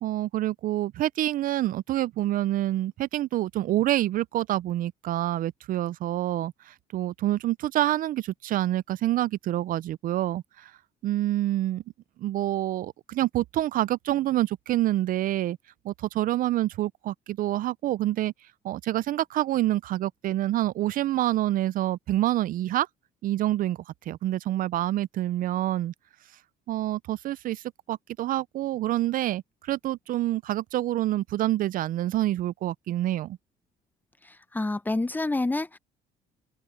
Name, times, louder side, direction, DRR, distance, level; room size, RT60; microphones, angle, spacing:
voice 1, 0.0-10.7 11.0-11.8 12.2-15.6 15.8-18.3 18.6-22.9 23.2-23.8 24.1-25.9 26.7-33.4, right 14 dB, 55° right, 0.4 m, -27 dB
voice 2, 34.5-35.8, left 2 dB, 10° left, 0.6 m, -27 dB
open air
cardioid pair, 110°, 17 cm